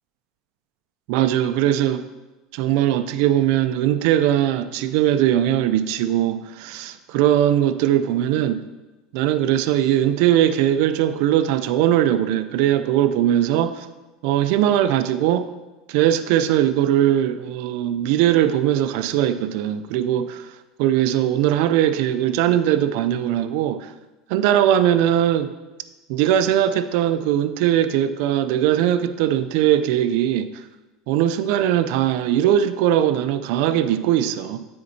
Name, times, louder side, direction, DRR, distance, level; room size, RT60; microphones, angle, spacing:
voice 1, 1.1-2.1 2.5-8.6 9.1-13.9 14.2-15.5 15.9-20.5 20.8-23.9 24.3-25.5 26.1-30.6 31.1-34.7, right 11 dB, 65° right, 11 dB, 0.3 m, -20 dB
8.4 x 4.3 x 2.7 m, 1.1 s
supercardioid pair, 145°, 0 cm